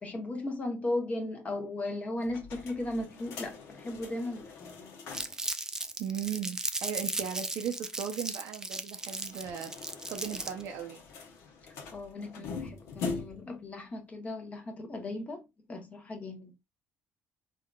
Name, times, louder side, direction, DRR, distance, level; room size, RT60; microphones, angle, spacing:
voice 1, 0.0-5.0 11.7-16.5, left 2 dB, 30° left, 0.8 m, -37 dB
sound 1, 2.2-5.5 5.8-5.9 6.1-6.2 9.0-13.6, left 4 dB, 80° left, 0.8 m, -42 dB
Crumpling crinkling, 5.1-10.7, right 2 dB, 10° right, 0.3 m, -36 dB
voice 2, 6.0-9.7 10.1-11.0 12.4-12.5, right 8 dB, 75° right, 0.5 m, -37 dB
3.6 x 2.4 x 2.2 m
cardioid pair, 105°, 5 cm